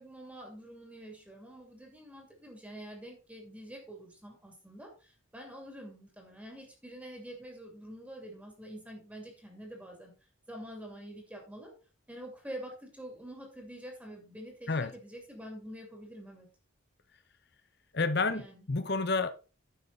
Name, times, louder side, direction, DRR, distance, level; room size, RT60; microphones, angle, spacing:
voice 1, 0.0-10.1 10.5-11.7 12.1-16.5 18.3-18.7, right 1 dB, 5° right, 2.6 m, -46 dB
voice 2, 17.9-18.4 18.7-19.3, left 3 dB, 55° left, 0.9 m, -29 dB
10.0 x 6.9 x 4.1 m
head